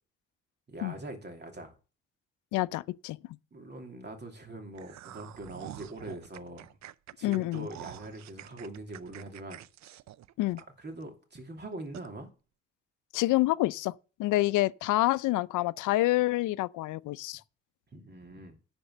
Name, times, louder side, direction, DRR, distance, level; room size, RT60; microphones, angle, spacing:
voice 1, 0.7-1.7 3.5-6.8 7.2-9.6 10.8-12.3 17.9-18.6, right 2 dB, 35° right, 2.7 m, -43 dB
voice 2, 2.5-3.2 7.2-7.7 10.4-10.6 13.1-13.9 14.2-17.4, left 17 dB, 85° left, 0.5 m, -27 dB
sound 1, 4.7-11.0 11.4-11.5 11.9-12.1, right 13 dB, 65° right, 0.6 m, -47 dB
10.5 x 4.4 x 7.1 m
cardioid pair, 90°, 30 cm